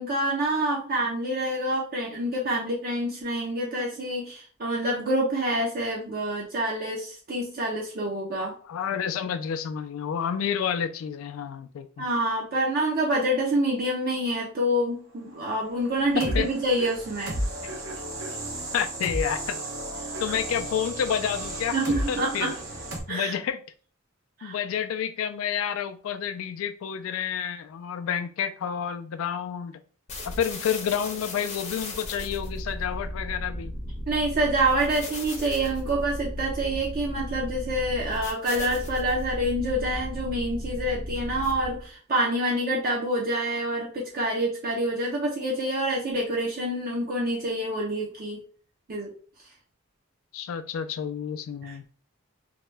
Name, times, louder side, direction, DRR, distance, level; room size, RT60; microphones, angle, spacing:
voice 1, 0.0-8.6 12.0-17.4 20.0-20.2 21.7-22.6 23.1-23.4 24.4-24.6 34.1-48.4 48.9-49.1 51.6-51.8, right 1 dB, 45° right, -2 dB, 0.5 m, -27 dB
voice 2, 8.7-12.1 16.2-16.5 18.7-19.6 20.2-22.5 23.1-23.6 24.4-29.8 30.3-33.7 50.3-51.8, left 8 dB, 80° left, 10 dB, 0.3 m, -29 dB
sound 1, 15.7-23.0, right 1 dB, 75° right, 0.9 m, -33 dB
sound 2, 30.1-41.9, left 1 dB, 35° left, 0.6 m, -35 dB
2.8 x 2.2 x 3.1 m, 0.42 s
head